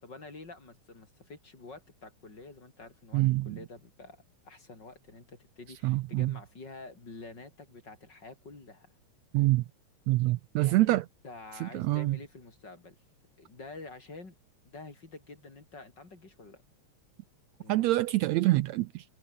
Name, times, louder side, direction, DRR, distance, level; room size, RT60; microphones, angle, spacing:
voice 1, 0.0-8.9 10.6-10.9 11.2-13.0 13.4-14.4 14.7-16.6 17.6-17.9, left 3 dB, 35° left, 4.7 m, -48 dB
voice 2, 3.1-3.6 5.8-6.3 9.3-9.6 10.1-11.0 11.6-12.2 17.7-19.0, right 18 dB, 75° right, 1.7 m, -26 dB
omnidirectional pair, 3.4 m